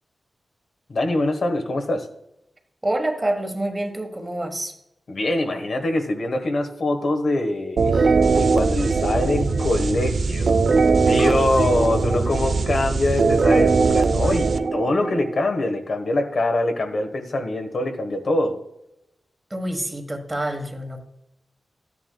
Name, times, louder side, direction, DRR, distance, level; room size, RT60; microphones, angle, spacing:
voice 1, 0.9-2.1 5.1-10.6 11.0-18.6, left 2 dB, 60° left, 5 dB, 1.3 m, -24 dB
voice 2, 2.8-4.7 11.2-11.4 19.5-21.0, right 1 dB, 20° right, 5 dB, 1.3 m, -27 dB
sound 1, 7.8-15.4, right 4 dB, 65° right, 0.5 m, -20 dB
13.5 x 9.9 x 2.3 m, 0.84 s
wide cardioid pair, 130°, 0 cm